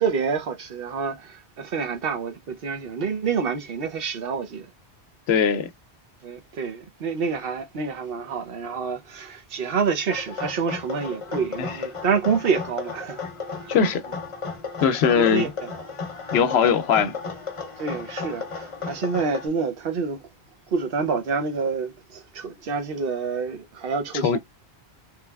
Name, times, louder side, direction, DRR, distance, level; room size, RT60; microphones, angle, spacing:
voice 1, 0.0-4.7 6.2-13.2 13.5-13.8 14.9-15.7 17.8-20.2 20.7-24.4, right 5 dB, 65° right, 0.9 m, -28 dB
voice 2, 5.3-5.7 11.6-11.8 13.7-14.0 14.8-15.5 16.3-17.2 24.1-24.4, left 7 dB, 75° left, 0.8 m, -20 dB
sound 1, 10.1-19.5, left 4 dB, 35° left, 0.7 m, -34 dB
3.3 x 3.1 x 2.2 m
omnidirectional pair, 1.1 m